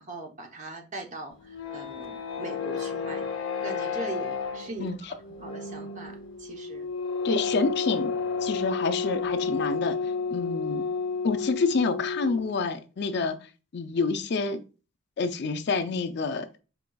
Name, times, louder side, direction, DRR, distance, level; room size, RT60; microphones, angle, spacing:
voice 1, 0.0-3.3 3.6-4.9 5.4-6.9, right 3 dB, 35° right, 0.8 m, -40 dB
sound 1, 1.3-12.6, left 5 dB, 70° left, 0.8 m, -31 dB
voice 2, 4.8-5.1 7.2-8.1 8.4-10.8 11.2-13.4 13.7-14.6 15.2-16.6, left 4 dB, 50° left, 0.4 m, -28 dB
4.8 x 3.8 x 2.3 m
head